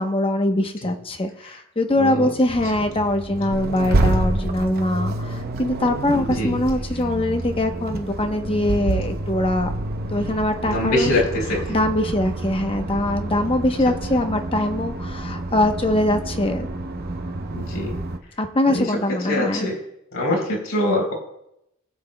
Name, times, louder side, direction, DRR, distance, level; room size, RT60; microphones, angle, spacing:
voice 1, 0.0-9.7 10.1-11.1 11.7-16.7 18.4-19.7, left 1 dB, 25° left, 5 dB, 0.9 m, -22 dB
Accelerating revving vroom, 2.5-18.2, right 2 dB, 45° right, 0.7 m, -28 dB
voice 2, 6.1-6.5 10.6-11.7 17.5-17.9 18.7-18.9 19.2-19.8 20.1-21.1, left 1 dB, 90° left, -2 dB, 4.2 m, -23 dB
22.5 x 7.8 x 2.2 m, 0.81 s
head